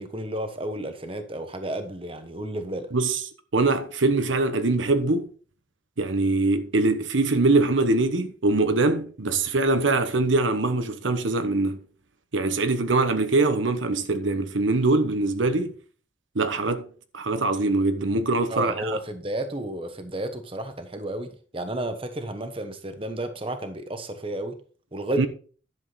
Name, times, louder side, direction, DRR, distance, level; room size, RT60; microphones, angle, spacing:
voice 1, 0.0-2.9 18.5-24.6 24.9-25.3, right 1 dB, 30° right, 1.1 m, -32 dB
voice 2, 3.5-5.3 6.0-11.8 12.3-15.7 16.3-16.8 17.1-19.0 25.2-25.3, right 2 dB, 80° right, 1.1 m, -23 dB
11.0 x 7.2 x 4.1 m
head